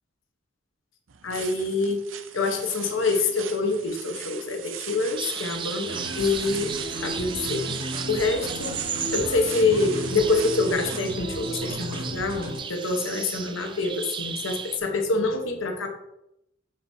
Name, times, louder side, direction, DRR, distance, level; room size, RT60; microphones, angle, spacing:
Rustling Leaves, 1.1-11.0, right 10 dB, 75° right, 0.6 m, -40 dB
voice 1, 1.2-2.0 2.3-6.7 7.0-8.7 9.1-15.9, left 3 dB, 85° left, 3 dB, 1.1 m, -26 dB
sound 1, 5.2-14.8, right 7 dB, 25° right, 0.4 m, -35 dB
sound 2, 5.8-12.6, equal, 50° right, 2.2 m, -34 dB
9.1 x 6.1 x 2.8 m, 0.83 s
head